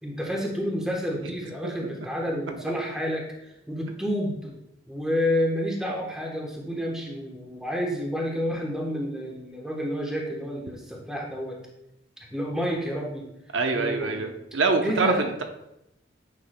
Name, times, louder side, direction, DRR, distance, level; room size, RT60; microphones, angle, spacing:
voice 1, 0.0-4.6 4.9-11.6 12.3-13.3 13.7-14.2 14.8-15.2, equal, 5° right, -1 dB, 1.0 m, -29 dB
voice 2, 13.5-15.4, right 3 dB, 80° right, 4 dB, 0.7 m, -25 dB
8.9 x 5.9 x 2.2 m, 0.84 s
head